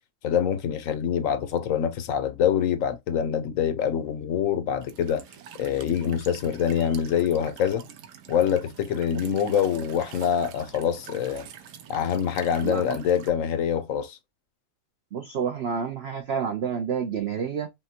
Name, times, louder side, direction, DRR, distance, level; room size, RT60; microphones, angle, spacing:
voice 1, 0.2-5.2 5.6-7.8 8.3-11.5 11.9-14.2, left 8 dB, 65° left, 0.9 m, -25 dB
Walk footsteps / Chirp tweet / Stream, 4.8-13.3, right 9 dB, 90° right, 1.4 m, -46 dB
voice 2, 12.6-13.0 15.1-17.7, right 7 dB, 60° right, 0.6 m, -29 dB
5.7 x 2.2 x 2.8 m
omnidirectional pair, 1.7 m